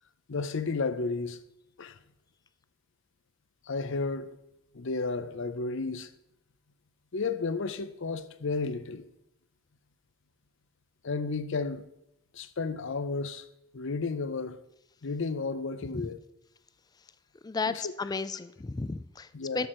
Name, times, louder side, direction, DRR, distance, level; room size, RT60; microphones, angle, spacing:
voice 1, 0.3-1.4 1.8-2.0 3.7-4.4 4.7-6.1 7.1-9.0 11.0-11.9 12.3-13.4 13.7-14.6 15.0-16.2 17.7-17.9 19.3-19.7, left 4 dB, 60° left, 0.6 m, -32 dB
voice 2, 17.4-19.7, left 4 dB, 20° left, 0.3 m, -33 dB
12.5 x 4.5 x 6.1 m
head